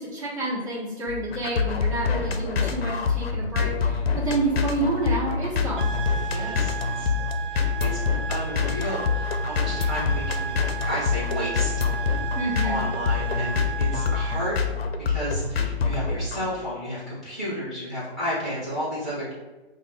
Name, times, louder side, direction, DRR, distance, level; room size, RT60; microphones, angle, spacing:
voice 1, 0.0-5.9 12.3-12.9, right 2 dB, 30° right, -7 dB, 1.4 m, -29 dB
sound 1, 1.1-16.5, left 5 dB, 65° left, 0.6 m, -26 dB
sound 2, 5.8-14.7, right 7 dB, 55° right, 0.4 m, -35 dB
voice 2, 6.3-7.1 7.5-8.0 8.3-10.6 10.8-11.7 12.0-12.2 12.6-14.6 15.1-19.3, equal, ahead, -9 dB, 0.8 m, -32 dB
5.2 x 2.1 x 3.5 m, 1.1 s
hypercardioid pair, 160°, 32 cm